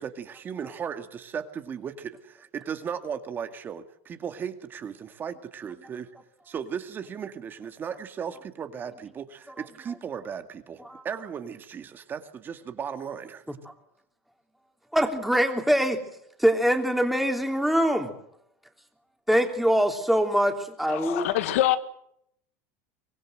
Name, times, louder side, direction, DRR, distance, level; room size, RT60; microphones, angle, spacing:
voice 1, 0.0-6.1 6.5-13.4, right 7 dB, 30° right, 9 dB, 2.0 m, -36 dB
voice 2, 14.9-16.0 16.4-18.1 19.3-21.3, equal, ahead, 5 dB, 3.3 m, -23 dB
voice 3, 20.9-21.8, left 13 dB, 85° left, 12 dB, 1.8 m, -24 dB
24.5 x 20.0 x 7.8 m, 0.72 s
supercardioid pair, 135°, 7 cm